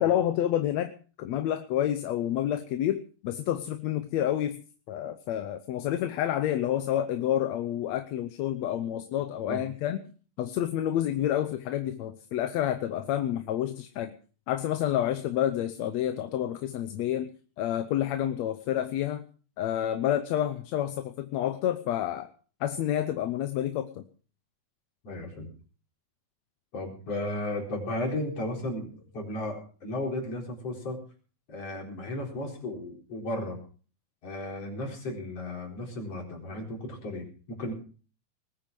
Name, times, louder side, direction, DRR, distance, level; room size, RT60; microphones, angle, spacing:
voice 1, 0.0-4.6 4.9-10.1 10.4-14.1 14.5-19.2 19.6-22.3 22.6-24.1, left 11 dB, 70° left, 9 dB, 2.0 m, -29 dB
voice 2, 25.0-25.5 26.7-31.0 31.5-33.6 34.2-37.7, left 1 dB, 55° left, 1 dB, 5.3 m, -34 dB
20.0 x 9.0 x 6.1 m, 0.40 s
omnidirectional pair, 3.3 m